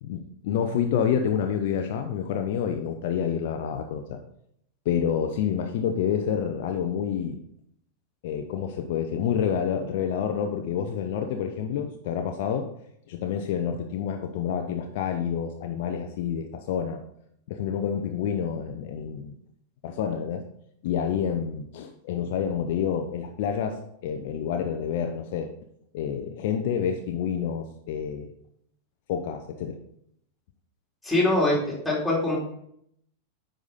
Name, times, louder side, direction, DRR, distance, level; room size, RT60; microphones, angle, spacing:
voice 1, 0.0-4.2 4.9-7.4 8.2-12.7 13.1-17.0 17.5-19.3 19.8-20.4 20.8-25.5 25.9-28.3 29.1-29.8, left 8 dB, 50° left, 5 dB, 0.7 m, -28 dB
voice 2, 31.0-32.4, left 1 dB, 5° left, -5 dB, 3.2 m, -23 dB
9.5 x 5.1 x 4.1 m, 0.71 s
figure-of-eight pair, 90°, 0 cm